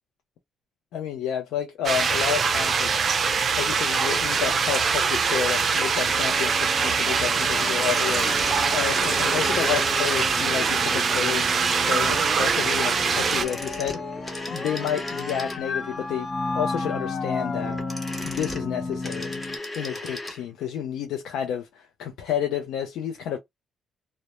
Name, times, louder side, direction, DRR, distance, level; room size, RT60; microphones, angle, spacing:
voice 1, 0.9-2.9 3.6-8.3 8.7-11.5 11.9-14.0 14.5-17.8 18.2-19.4 19.8-23.4, left 9 dB, 85° left, 0.4 m, -30 dB
sound 1, 1.8-13.4, right 5 dB, 50° right, 0.4 m, -23 dB
sound 2, 5.9-19.6, left 3 dB, 40° left, 0.7 m, -34 dB
sound 3, 7.7-10.6 13.0-15.9 17.6-20.4 20.7-20.8, left 1 dB, 15° left, 0.9 m, -36 dB
2.1 x 2.0 x 2.9 m
cardioid pair, 95°, 0 cm